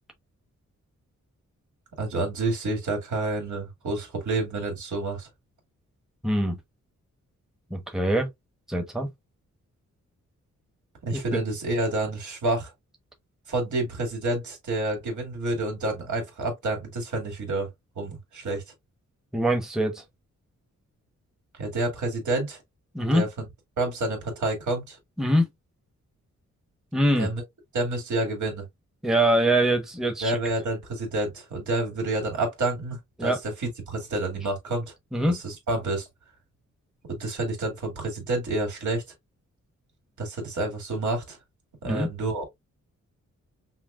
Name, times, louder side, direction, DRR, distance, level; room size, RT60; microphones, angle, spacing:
voice 1, 2.0-5.3 11.0-12.7 13.5-17.7 18.0-18.6 21.6-22.6 23.1-23.5 23.8-25.0 27.2-27.4 27.7-28.7 30.2-34.9 35.3-36.1 37.1-39.0 40.2-41.4 41.8-42.4, right 2 dB, 75° right, 2.2 m, -29 dB
voice 2, 6.2-6.6 7.7-8.3 8.7-9.1 11.1-11.4 19.3-20.0 22.9-23.3 25.2-25.5 26.9-27.3 29.0-30.4 33.2-33.4 35.1-35.4 41.8-42.1, right 1 dB, ahead, 0.9 m, -23 dB
5.8 x 2.3 x 2.3 m
wide cardioid pair, 130°, 30 cm